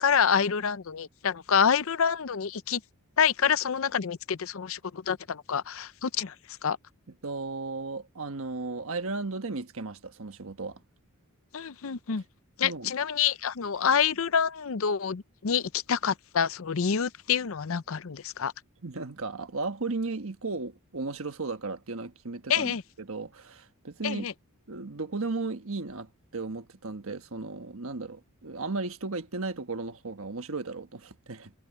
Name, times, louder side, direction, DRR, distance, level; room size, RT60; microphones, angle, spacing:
voice 1, 0.0-2.8 3.2-6.8 11.5-12.2 12.6-18.5 22.5-22.8 24.0-24.3, left 7 dB, 65° left, 0.6 m, -27 dB
voice 2, 7.2-10.8 12.6-12.9 18.8-24.3 24.7-31.5, right 3 dB, 65° right, 1.4 m, -35 dB
head